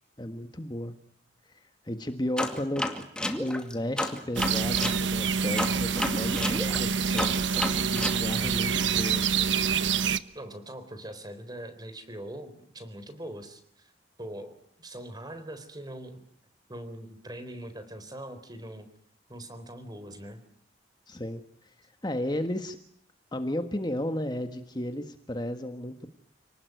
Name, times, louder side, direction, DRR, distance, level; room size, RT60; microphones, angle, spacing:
voice 1, 0.2-0.9 1.8-2.8 3.4-9.5 21.1-21.7 22.0-22.8 23.3-26.1, left 1 dB, 25° left, 7 dB, 1.6 m, -34 dB
sound 1, 2.4-5.0 5.6-8.2, left 1 dB, 5° left, 2.4 m, -31 dB
sound 2, 4.4-10.2, right 6 dB, 80° right, 1.1 m, -27 dB
voice 2, 10.3-13.9 14.2-16.2 16.7-18.9 19.3-20.4, right 1 dB, 20° right, 10 dB, 3.9 m, -42 dB
29.5 x 19.5 x 9.4 m, 0.69 s
head